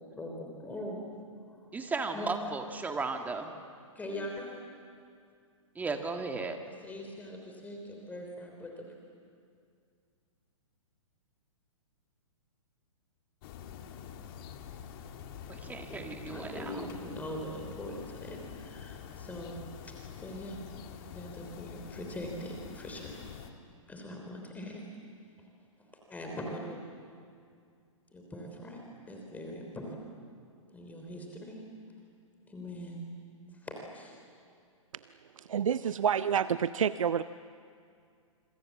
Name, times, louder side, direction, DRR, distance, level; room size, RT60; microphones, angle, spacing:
voice 1, 0.1-1.0 2.1-2.3 3.9-4.6 6.7-8.9 15.9-20.6 21.1-23.2 23.9-24.8 25.4-25.5 26.1-26.8 28.1-30.1 30.7-31.6 32.5-33.0 33.5-34.1, left 1 dB, 10° left, 1 dB, 3.4 m, -42 dB
voice 2, 1.7-3.6 5.7-6.6 15.5-16.9, right 3 dB, 10° right, 5 dB, 1.8 m, -35 dB
sound 1, 13.4-23.5, left 8 dB, 40° left, 2.0 m, -46 dB
voice 3, 35.4-37.2, right 8 dB, 70° right, 15 dB, 0.5 m, -28 dB
26.5 x 24.5 x 7.4 m, 2.3 s
figure-of-eight pair, 120°, 17 cm